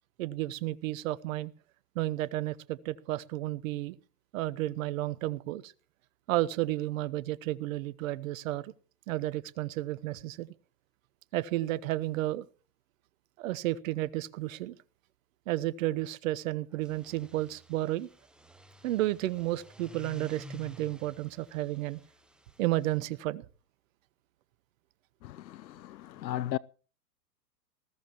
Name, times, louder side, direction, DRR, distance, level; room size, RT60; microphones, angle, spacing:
voice 1, 0.2-1.5 1.9-4.0 4.3-5.7 6.3-8.7 9.1-10.5 11.3-12.5 13.4-14.8 15.5-18.1 18.8-22.0 22.6-23.4, right 16 dB, 50° right, 1.1 m, -32 dB
sound 1, 16.7-23.0, equal, ahead, 0.7 m, -52 dB
voice 2, 25.2-26.6, left 13 dB, 85° left, 0.6 m, -36 dB
20.0 x 15.0 x 3.0 m
hypercardioid pair, 125°, 50 cm